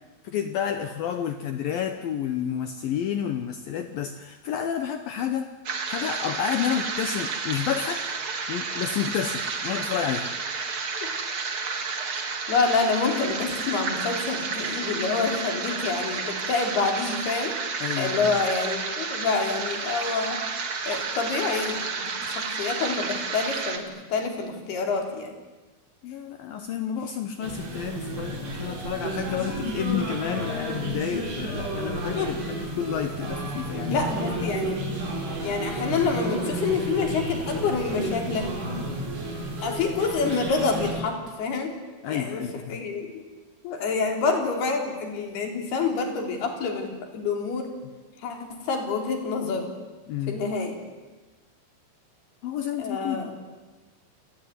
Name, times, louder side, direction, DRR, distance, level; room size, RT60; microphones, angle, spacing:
voice 1, 0.2-5.5 5.9-8.0 8.5-10.3 17.8-18.3 26.0-34.0 34.8-35.0 39.0-39.1 42.0-42.8 50.1-50.5 52.4-53.4, left 9 dB, 75° left, 8 dB, 2.1 m, -30 dB
sound 1, 5.6-23.8, right 5 dB, 40° right, 2.0 m, -31 dB
voice 2, 12.1-17.5 18.0-20.4 20.9-25.3 32.2-32.3 33.9-34.8 35.4-38.5 39.6-41.8 42.1-43.2 43.6-47.7 48.2-49.7 50.3-50.8 52.8-53.4, left 4 dB, 55° left, 3 dB, 5.3 m, -27 dB
sound 2, 27.4-40.9, right 1 dB, 60° right, 7.4 m, -31 dB
29.0 x 19.5 x 9.5 m, 1.2 s
omnidirectional pair, 5.6 m